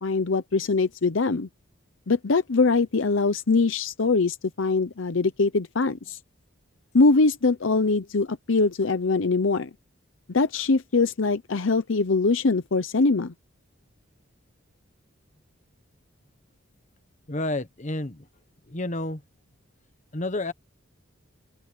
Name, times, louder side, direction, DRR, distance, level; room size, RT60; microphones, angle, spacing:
voice 1, 0.0-1.5 2.1-6.2 6.9-9.7 10.3-13.3, left 3 dB, 65° left, 0.7 m, -22 dB
voice 2, 17.3-18.2 18.7-19.2 20.1-20.5, left 2 dB, 35° left, 1.3 m, -30 dB
open air
head